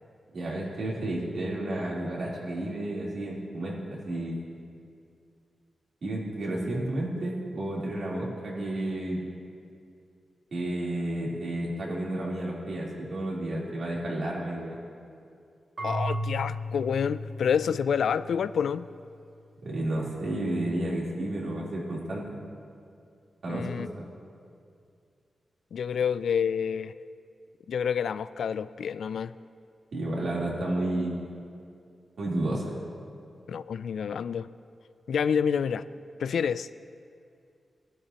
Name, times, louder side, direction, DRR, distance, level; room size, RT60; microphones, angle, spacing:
voice 1, 0.3-4.4 6.0-9.2 10.5-14.8 19.6-22.4 23.4-23.9 29.9-31.3 32.2-32.7, right 1 dB, 70° right, -5 dB, 3.5 m, -31 dB
voice 2, 15.8-18.9 23.5-23.9 25.7-26.9 27.7-29.3 33.5-34.5 35.1-35.8 36.2-36.7, left 7 dB, 85° left, 15 dB, 0.3 m, -28 dB
Marimba xylophone / Wood, 15.8-18.6, equal, 50° right, 2.2 m, -35 dB
19.0 x 12.5 x 2.9 m, 2.4 s
cardioid pair, 80°, 0 cm